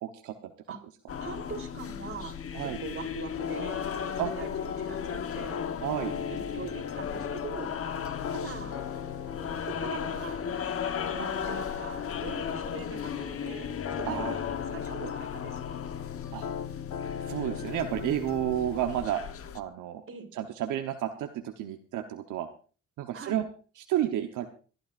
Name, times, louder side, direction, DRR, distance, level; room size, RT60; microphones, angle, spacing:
voice 1, 0.0-0.5 2.5-2.8 4.2-4.3 5.8-6.1 14.1-14.3 16.3-16.5 17.3-19.2 19.5-20.0 20.4-22.5 23.0-23.4 23.9-24.5, right 11 dB, 85° right, 5 dB, 1.1 m, -31 dB
sound 1, 1.1-19.6, left 8 dB, 50° left, 1.1 m, -35 dB
voice 2, 1.2-3.8 4.0-5.6 6.3-7.7 8.3-8.8 9.4-10.4 11.0-15.8 20.1-20.3 23.1-23.4, right 5 dB, 45° right, 3 dB, 3.5 m, -42 dB
sound 2, 3.4-18.7, left 7 dB, 70° left, 1.2 m, -41 dB
26.0 x 12.0 x 2.5 m, 0.39 s
cardioid pair, 90°, 30 cm